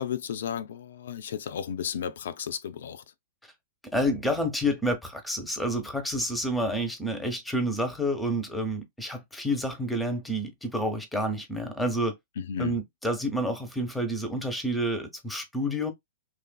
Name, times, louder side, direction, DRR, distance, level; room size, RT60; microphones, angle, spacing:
voice 1, 0.0-3.0 12.4-12.8, left 8 dB, 70° left, 0.4 m, -33 dB
voice 2, 3.9-12.2 12.6-15.9, equal, 5° left, 0.8 m, -29 dB
3.1 x 2.5 x 2.2 m
hypercardioid pair, 115°, 0 cm